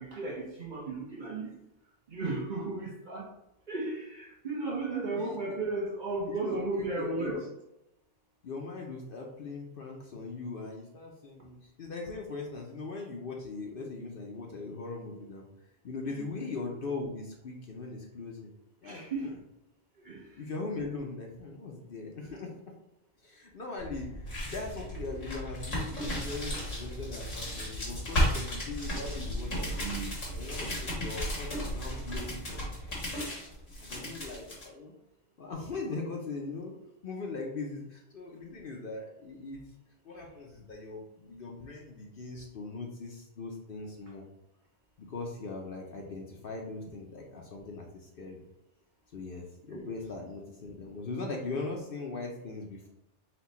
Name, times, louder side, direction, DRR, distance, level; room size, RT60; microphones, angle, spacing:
voice 1, 0.0-1.6 2.1-3.3 3.7-7.4 16.1-16.2 18.8-19.3 20.0-20.2 29.8-30.1, right 3 dB, 45° right, -2 dB, 1.0 m, -34 dB
voice 2, 6.3-7.4 8.4-15.5 15.8-18.5 18.8-19.4 20.4-22.5 23.2-30.0 30.3-33.0 33.8-34.9 35.4-36.7 37.0-39.6 40.0-44.2 45.0-48.4 49.1-52.9, left 3 dB, 55° left, 0 dB, 0.8 m, -40 dB
sound 1, 23.8-34.6, equal, 85° left, 1.9 m, -34 dB
4.3 x 2.3 x 4.1 m, 0.87 s
omnidirectional pair, 1.2 m